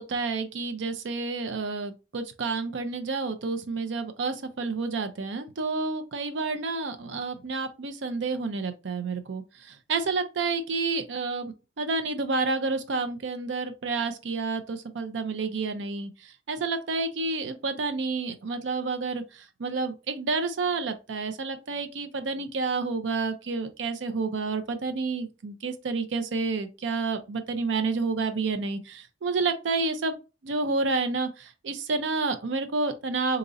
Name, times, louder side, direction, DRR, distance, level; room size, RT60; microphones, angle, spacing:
voice 1, 0.0-16.1 16.5-19.2 19.6-30.2 30.4-33.4, right 4 dB, 90° right, 0.5 m, -29 dB
3.9 x 2.9 x 2.5 m
head